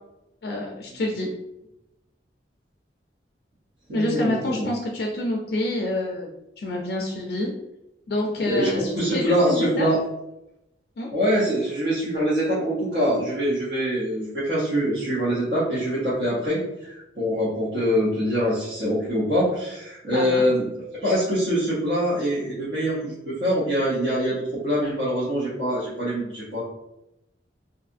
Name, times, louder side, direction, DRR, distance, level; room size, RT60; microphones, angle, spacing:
voice 1, 0.4-1.3 3.9-6.3 6.6-7.5 8.1-9.9 11.0-11.1 20.1-20.4, left 1 dB, 60° left, 0 dB, 0.4 m, -27 dB
voice 2, 3.9-4.7 8.4-10.0 11.1-26.6, equal, 60° right, -10 dB, 0.8 m, -24 dB
2.6 x 2.4 x 2.5 m, 0.88 s
head